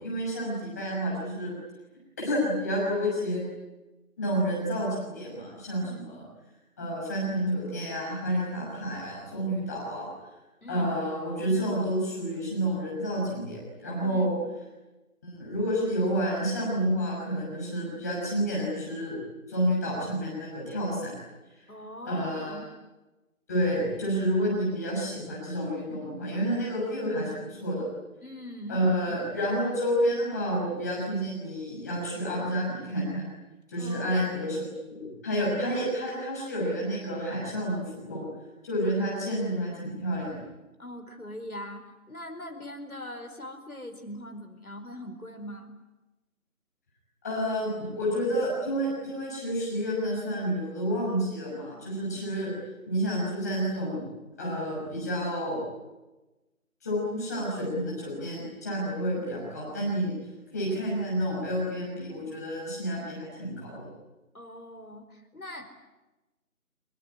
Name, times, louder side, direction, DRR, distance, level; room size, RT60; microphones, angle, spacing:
voice 1, 0.0-1.5 2.2-3.4 4.2-6.2 6.8-10.1 10.7-14.3 15.2-19.2 19.5-21.1 21.5-21.6 22.0-22.6 23.5-27.8 28.7-33.2 33.7-34.6 34.9-38.3 38.6-40.4 47.2-52.5 52.9-54.0 54.4-55.6 56.8-60.1 60.5-63.9, equal, 10° left, -5 dB, 6.1 m, -29 dB
voice 2, 14.0-14.3 21.7-22.7 28.2-29.2 33.8-34.3 40.8-45.7 64.3-65.7, left 1 dB, 80° left, 6 dB, 4.7 m, -41 dB
25.0 x 22.5 x 9.9 m, 1.1 s
figure-of-eight pair, 170°, 43 cm